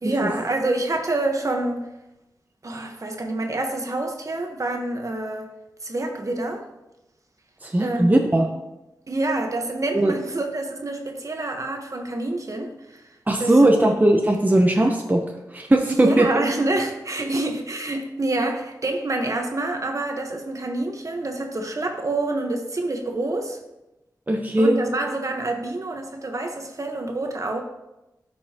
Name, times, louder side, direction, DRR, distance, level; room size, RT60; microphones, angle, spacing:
voice 1, 0.0-1.8 2.6-5.5 5.8-6.6 7.8-8.1 9.1-13.0 13.4-13.9 15.9-23.6 24.6-27.6, right 2 dB, 50° right, 4 dB, 1.2 m, -27 dB
voice 2, 7.6-8.5 9.9-10.1 13.3-15.2 15.5-16.3 24.3-24.8, right 1 dB, 25° right, 2 dB, 0.9 m, -18 dB
12.5 x 5.4 x 2.9 m, 0.95 s
cardioid pair, 55°, 7 cm